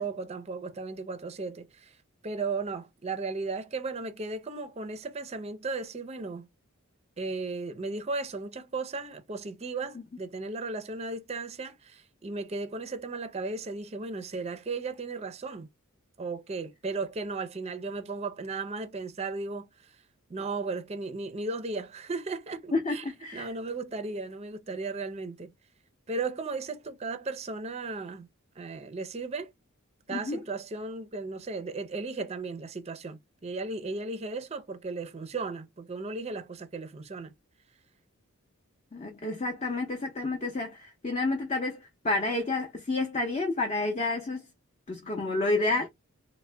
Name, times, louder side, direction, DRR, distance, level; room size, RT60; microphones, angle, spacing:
voice 1, 0.0-2.0 2.2-6.5 7.2-15.7 16.2-20.0 20.3-23.0 23.3-25.5 26.1-28.3 28.6-29.5 30.1-37.3, right 3 dB, 30° right, 0.5 m, -35 dB
voice 2, 22.7-23.5 30.1-30.4 38.9-44.5 44.9-45.9, left 2 dB, 30° left, 0.6 m, -30 dB
3.6 x 2.1 x 3.3 m
head